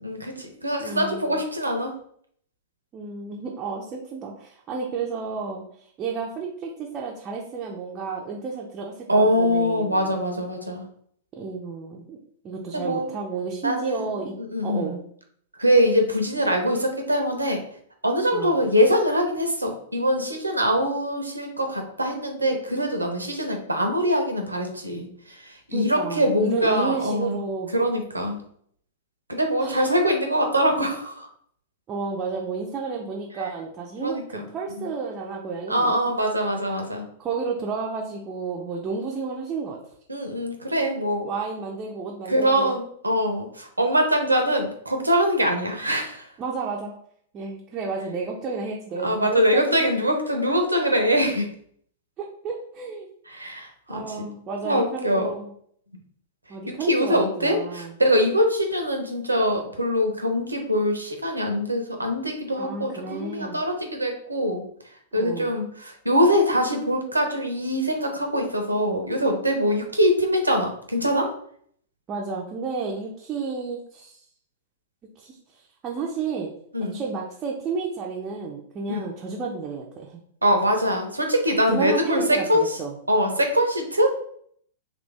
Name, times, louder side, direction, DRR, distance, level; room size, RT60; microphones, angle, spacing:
voice 1, 0.0-1.9 9.1-10.8 12.7-13.1 13.6-14.2 14.5-15.0 15.6-17.6 18.0-27.4 27.7-28.4 29.3-31.3 34.0-34.5 34.8-34.9 35.7-37.1 40.1-41.3 42.3-46.3 49.0-51.5 53.3-54.0 54.6-55.3 56.7-64.6 65.1-71.3 76.7-77.0 78.9-79.1 80.4-82.8 83.1-84.1, equal, 85° right, 4 dB, 0.6 m, -23 dB
voice 2, 0.8-1.4 2.9-10.1 11.3-12.2 12.4-14.4 14.6-15.0 18.3-18.7 25.7-27.8 29.6-29.9 31.9-35.9 37.2-39.8 41.2-42.7 46.4-46.9 47.3-49.9 52.2-53.1 53.9-55.5 56.5-58.0 62.6-63.6 65.1-65.5 72.1-74.2 75.2-76.5 76.8-80.2 81.6-82.9, right 4 dB, 25° right, -1 dB, 0.5 m, -32 dB
3.0 x 2.6 x 3.2 m, 0.63 s
figure-of-eight pair, 100°, 0 cm